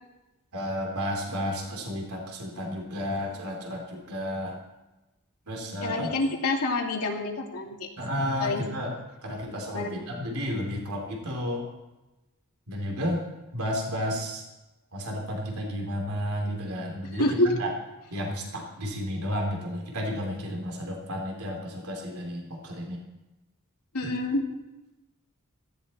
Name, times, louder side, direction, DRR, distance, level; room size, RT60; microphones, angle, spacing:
voice 1, 0.5-4.6 5.5-6.1 8.0-8.9 9.2-11.7 12.7-13.2 13.5-14.4 14.9-17.2 17.6-17.7 18.1-23.0 24.0-24.2, equal, 75° right, 1 dB, 3.0 m, -32 dB
voice 2, 5.8-7.9 8.4-8.6 9.7-9.9 17.1-17.5 23.9-24.4, left 2 dB, 85° left, -1 dB, 2.6 m, -27 dB
17.0 x 14.5 x 4.2 m, 1.0 s
head